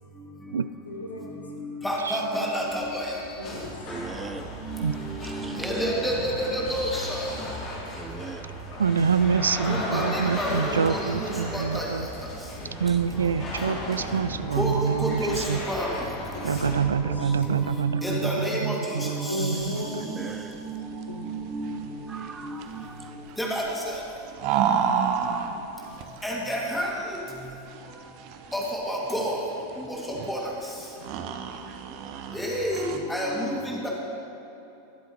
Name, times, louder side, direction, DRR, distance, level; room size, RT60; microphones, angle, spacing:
voice 1, 0.9-1.4 3.4-3.7 8.1-8.3 19.3-20.2 21.1-21.2 31.0-31.3, left 1 dB, 80° left, 2 dB, 1.4 m, -35 dB
voice 2, 1.5-3.2 4.6-7.3 9.7-11.9 14.5-16.1 16.7-16.8 17.2-17.4 17.6-20.3 20.6-20.8 21.1-21.8 22.0-22.1 22.4-22.6 23.4-23.9 26.2-27.2 28.5-29.4 29.9-30.4 32.3-33.9, equal, 5° left, -3 dB, 2.4 m, -30 dB
sound 1, 2.6-17.7, left 1 dB, 40° left, 2.8 m, -36 dB
voice 3, 3.9-4.6 5.2-5.6 8.0-8.6 12.6-13.4 17.0-17.7 20.0-20.8 22.1-23.1, right 4 dB, 15° right, 7 dB, 0.8 m, -41 dB
voice 4, 8.8-12.1 12.8-15.6 16.4-20.0, right 6 dB, 75° right, 15 dB, 0.3 m, -26 dB
sound 2, 19.5-33.0, right 7 dB, 50° right, 0.9 m, -32 dB
21.5 x 7.9 x 3.1 m, 3.0 s
figure-of-eight pair, 90°, 0 cm